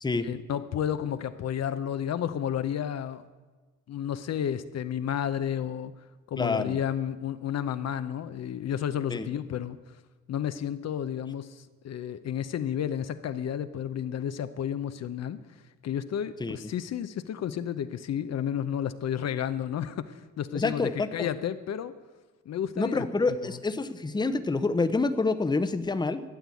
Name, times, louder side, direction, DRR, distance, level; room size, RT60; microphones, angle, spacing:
voice 1, 0.2-3.2 3.9-5.9 6.3-10.0 10.3-15.4 15.8-21.9 22.5-23.1 23.4-23.6, left 9 dB, 60° left, 11 dB, 0.8 m, -31 dB
voice 2, 6.4-6.8 9.1-9.2 16.4-16.6 20.5-21.3 22.8-26.2, left 3 dB, 15° left, 11 dB, 0.8 m, -27 dB
13.0 x 8.0 x 8.4 m, 1.3 s
cardioid pair, 90°, 30 cm